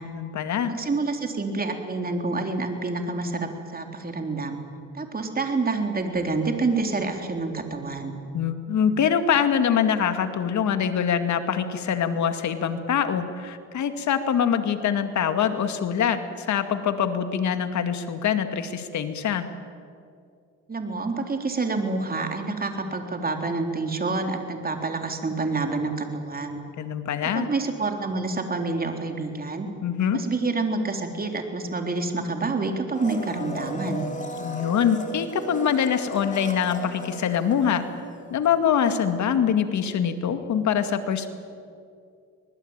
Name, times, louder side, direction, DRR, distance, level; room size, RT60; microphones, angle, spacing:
voice 1, 0.0-0.7 8.3-19.4 26.8-27.5 29.8-30.2 34.4-37.8 38.3-41.3, left 8 dB, 70° left, 8 dB, 2.2 m, -24 dB
voice 2, 0.7-4.6 4.9-8.2 20.7-26.6 27.3-29.7 30.1-34.1, right 3 dB, 30° right, 4 dB, 3.7 m, -28 dB
Domestic sounds home sounds, 32.9-38.2 38.5-38.6, left 1 dB, 25° left, 3.3 m, -36 dB
24.0 x 20.0 x 9.0 m, 2.3 s
cardioid pair, 90°, 30 cm